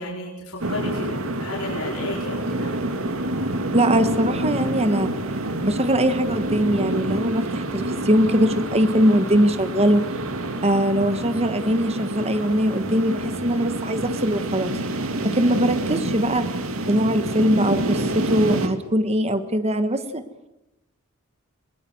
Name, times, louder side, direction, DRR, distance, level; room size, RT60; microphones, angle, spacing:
voice 1, 0.0-2.7, left 2 dB, 85° left, -2 dB, 4.7 m, -32 dB
sound 1, 0.6-18.7, right 1 dB, 70° right, 2.3 m, -27 dB
voice 2, 3.7-5.1 5.6-10.0 10.6-14.7 15.2-16.4 16.9-20.2, equal, 30° right, 10 dB, 1.4 m, -21 dB
22.0 x 22.0 x 7.9 m, 0.91 s
head